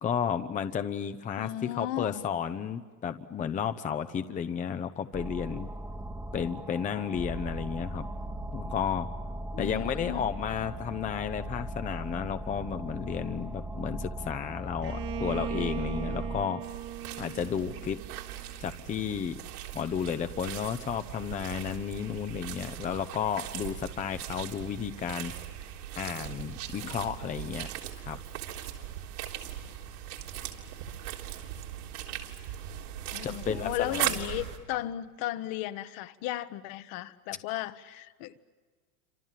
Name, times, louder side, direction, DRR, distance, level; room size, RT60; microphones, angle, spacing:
voice 1, 0.0-5.7 6.3-8.1 8.5-9.1 9.6-16.6 17.2-18.0 18.6-19.4 19.7-25.3 26.0-27.7 28.1-28.2 33.2-34.0, left 8 dB, 15° left, 9 dB, 0.7 m, -32 dB
voice 2, 1.4-2.2 9.5-10.3 33.1-38.3, left 13 dB, 45° left, 12 dB, 1.2 m, -35 dB
sound 1, 5.1-16.4, right 1 dB, 5° right, 1.2 m, -38 dB
Bowed string instrument, 14.8-18.6, right 11 dB, 55° right, 2.0 m, -39 dB
sound 2, 16.6-34.6, right 11 dB, 75° right, 3.7 m, -39 dB
28.5 x 26.5 x 7.5 m, 1.5 s
supercardioid pair, 125°, 45 cm